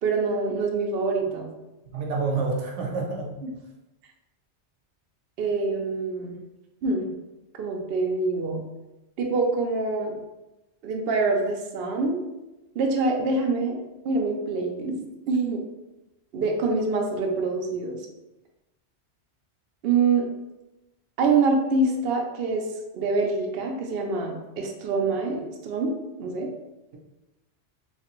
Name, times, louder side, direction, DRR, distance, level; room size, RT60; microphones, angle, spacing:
voice 1, 0.0-1.5 3.4-3.5 5.4-6.4 6.8-7.1 7.6-8.6 9.2-10.2 10.8-12.2 12.8-13.8 14.0-14.9 15.3-15.6 16.3-18.0 19.8-20.3 21.2-22.6 22.9-26.5, right 3 dB, 65° right, 1 dB, 0.7 m, -25 dB
voice 2, 1.9-3.3, right 4 dB, 80° right, 0 dB, 1.0 m, -28 dB
3.2 x 3.2 x 2.9 m, 1.0 s
omnidirectional pair, 1.2 m